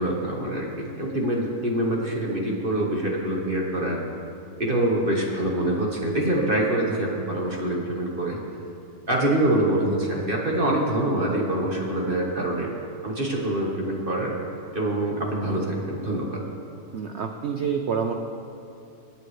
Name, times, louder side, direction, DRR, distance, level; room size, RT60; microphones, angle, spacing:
voice 1, 0.0-4.0 4.6-8.4 9.1-12.7 13.0-14.3 14.7-16.4, right 1 dB, 35° right, -2 dB, 1.4 m, -25 dB
voice 2, 16.9-18.1, right 6 dB, 65° right, 5 dB, 0.6 m, -27 dB
21.5 x 8.5 x 3.2 m, 2.7 s
omnidirectional pair, 1.8 m